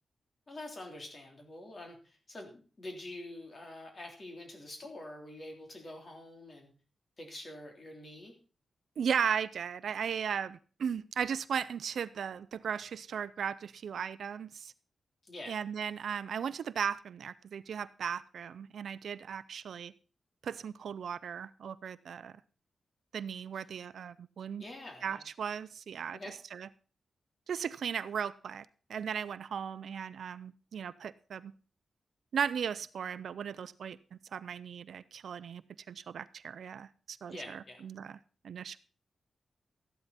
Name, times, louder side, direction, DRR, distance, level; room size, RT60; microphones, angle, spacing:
voice 1, 0.5-6.7 7.2-8.3 15.2-15.6 23.5-23.6 24.6-25.2 26.1-26.3 37.3-37.9, left 1 dB, 35° left, 2 dB, 3.5 m, -46 dB
voice 2, 9.0-14.7 15.5-19.9 20.4-22.3 23.1-24.6 25.0-26.2 26.5-26.7 27.5-31.5 32.3-34.0 34.3-35.6 35.9-38.2 38.4-38.8, right 7 dB, 80° right, 16 dB, 0.5 m, -36 dB
14.0 x 11.5 x 4.2 m, 0.38 s
wide cardioid pair, 130°, 0 cm